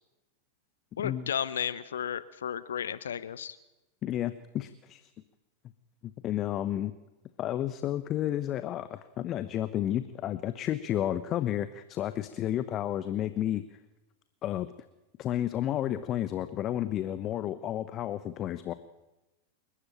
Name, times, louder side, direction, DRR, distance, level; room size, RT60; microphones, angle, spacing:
voice 1, 1.0-3.6, left 9 dB, 65° left, 16 dB, 0.9 m, -33 dB
voice 2, 4.0-5.0 6.0-6.9 7.4-13.6 14.4-14.7 15.2-18.7, left 12 dB, 30° left, 13 dB, 1.1 m, -31 dB
29.0 x 13.0 x 9.0 m, 1.0 s
figure-of-eight pair, 90°, 0 cm